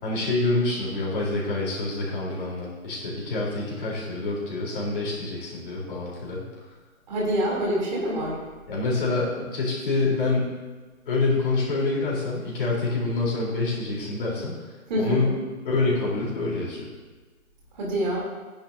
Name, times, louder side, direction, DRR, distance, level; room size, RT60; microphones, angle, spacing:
voice 1, 0.0-6.4 8.7-10.4 11.1-15.3 15.7-16.9, left 3 dB, 35° left, -5 dB, 3.8 m, -26 dB
voice 2, 7.1-8.4 14.9-15.2 17.7-18.2, right 1 dB, 30° right, -3 dB, 3.2 m, -26 dB
14.5 x 10.5 x 2.7 m, 1.3 s
figure-of-eight pair, 150°, 42 cm